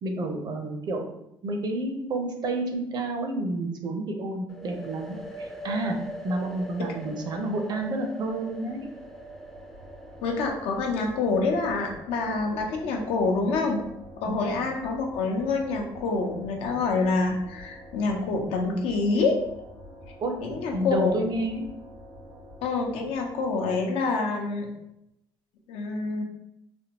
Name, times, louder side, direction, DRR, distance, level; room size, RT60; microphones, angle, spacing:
voice 1, 0.0-1.0 1.4-6.0 6.2-8.9 14.3-14.4 20.2-20.3 20.7-21.6, right 2 dB, 45° right, 4 dB, 0.6 m, -30 dB
sound 1, 4.5-12.1, right 1 dB, 5° left, 0.4 m, -42 dB
sound 2, 8.3-24.1, equal, 85° right, 1.4 m, -47 dB
voice 2, 10.2-13.8 14.2-19.4 20.4-21.2 22.6-24.7 25.7-26.2, left 3 dB, 80° left, 2 dB, 0.6 m, -26 dB
3.4 x 2.2 x 2.8 m, 0.84 s
cardioid pair, 95°, 10 cm